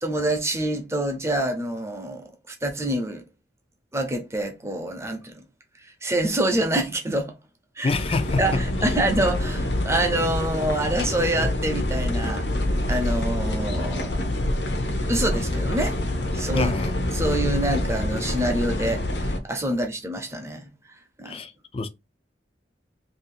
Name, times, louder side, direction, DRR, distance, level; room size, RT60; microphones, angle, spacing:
voice 1, 0.0-3.2 3.9-5.4 5.8-7.3 7.8-7.9 8.4-12.5 12.9-14.2 15.1-16.0 16.3-16.7 17.1-20.7 21.2-21.4, right 1 dB, 15° right, 0.7 m, -26 dB
voice 2, 7.8-8.6 16.5-17.0 21.2-21.9, left 3 dB, 30° left, 0.4 m, -27 dB
sound 1, 7.9-19.4, left 1 dB, 65° left, 0.8 m, -26 dB
3.0 x 2.8 x 4.2 m
head